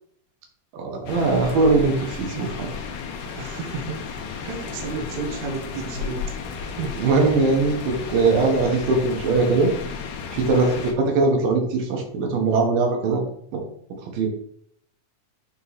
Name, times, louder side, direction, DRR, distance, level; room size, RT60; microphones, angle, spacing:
voice 1, 0.7-2.7 7.0-9.7 10.3-10.7 11.1-13.2 13.5-13.6 14.1-14.3, right 3 dB, 85° right, 1 dB, 2.9 m, -21 dB
sound 1, 1.1-10.9, left 5 dB, 75° left, 2.3 m, -34 dB
voice 2, 3.4-4.1 4.4-6.2 6.6-7.0 10.5-10.9, right 4 dB, 65° right, 2 dB, 2.2 m, -32 dB
9.0 x 3.0 x 4.0 m, 0.67 s
omnidirectional pair, 3.9 m